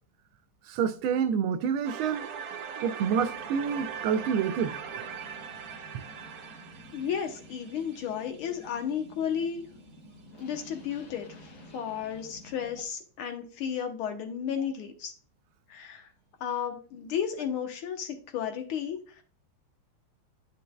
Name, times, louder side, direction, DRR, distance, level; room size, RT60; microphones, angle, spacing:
voice 1, 0.7-2.3 2.8-4.8, right 7 dB, 80° right, 1.4 m, -28 dB
sound 1, 1.8-8.7, right 7 dB, 65° right, 0.9 m, -40 dB
sound 2, 3.0-12.8, left 1 dB, 65° left, 2.3 m, -51 dB
voice 2, 6.9-9.7 10.4-11.3 11.7-15.1 15.7-16.1 16.4-19.2, left 8 dB, 85° left, 1.8 m, -33 dB
9.5 x 5.3 x 2.3 m
omnidirectional pair, 2.3 m